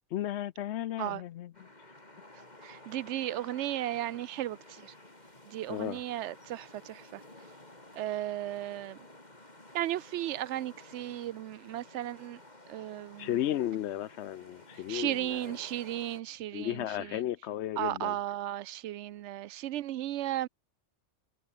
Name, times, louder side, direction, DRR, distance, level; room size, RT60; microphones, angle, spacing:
voice 1, 0.1-1.7 5.7-6.0 13.2-15.5 16.5-18.2, left 12 dB, 70° left, 0.8 m, -34 dB
sound 1, 1.5-16.2, left 1 dB, 35° left, 4.2 m, -53 dB
voice 2, 2.6-4.6 5.5-7.2 8.0-9.0 9.7-12.4 12.7-13.3 14.9-16.8 17.8-20.5, right 13 dB, 70° right, 0.9 m, -35 dB
omnidirectional pair, 1.3 m